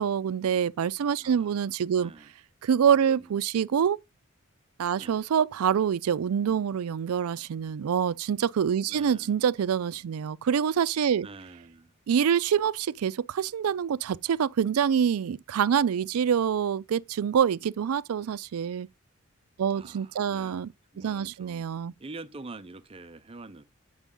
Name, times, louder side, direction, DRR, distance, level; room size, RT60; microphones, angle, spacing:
voice 1, 0.0-2.1 2.6-4.0 4.8-11.3 12.1-18.9 19.6-20.7 21.0-21.9, right 8 dB, 90° right, 0.4 m, -26 dB
voice 2, 1.2-2.3 3.1-3.4 4.9-5.2 6.4-6.7 8.9-9.4 11.2-11.9 19.7-20.7 20.9-21.6 22.0-23.6, right 3 dB, 25° right, 0.5 m, -46 dB
8.3 x 6.2 x 3.6 m
head